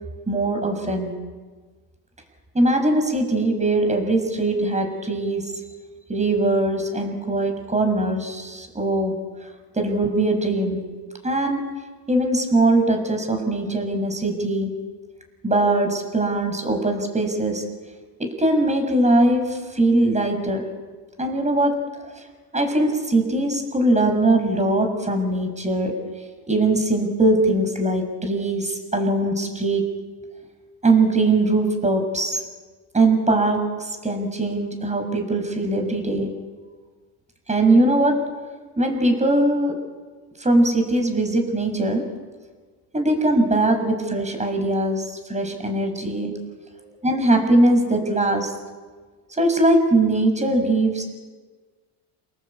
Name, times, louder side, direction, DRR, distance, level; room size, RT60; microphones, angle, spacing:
voice 1, 0.3-1.2 2.5-5.5 6.1-9.2 9.7-10.8 11.2-11.7 12.1-14.7 15.4-17.6 18.2-20.7 21.2-21.8 22.5-25.9 26.5-29.9 30.8-32.4 32.9-36.4 37.5-38.2 38.8-39.8 40.4-42.1 42.9-46.3 47.0-48.5 49.4-51.0, right 2 dB, 15° right, 5 dB, 6.7 m, -21 dB
30.0 x 18.0 x 8.7 m, 1.4 s
supercardioid pair, 100°, 46 cm